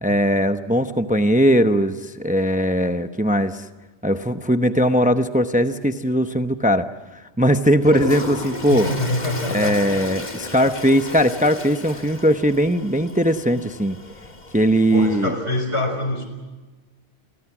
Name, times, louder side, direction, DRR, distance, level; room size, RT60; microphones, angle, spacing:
voice 1, 0.0-3.6 4.0-6.9 7.4-8.9 9.5-14.0 14.5-15.3, equal, 10° right, 8 dB, 0.8 m, -19 dB
Toilet flush, 7.8-15.3, left 2 dB, 40° left, 1.9 m, -34 dB
voice 2, 8.7-9.8 14.9-16.3, left 1 dB, 80° left, 6 dB, 5.2 m, -25 dB
30.0 x 23.5 x 6.1 m, 1.2 s
omnidirectional pair, 1.1 m